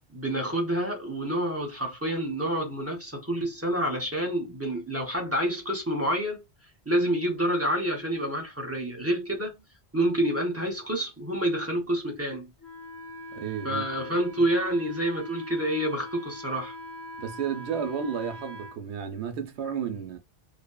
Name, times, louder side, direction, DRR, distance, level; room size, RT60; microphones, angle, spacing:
voice 1, 0.1-6.4 6.9-9.6 9.9-12.5 13.6-16.7, right 1 dB, 20° right, 0.5 m, -28 dB
Wind instrument woodwind instrument, 12.6-18.8, left 1 dB, 15° left, 0.7 m, -42 dB
voice 2, 13.3-13.8 17.2-20.2, right 7 dB, 75° right, 0.9 m, -32 dB
2.6 x 2.4 x 2.2 m
omnidirectional pair, 1.1 m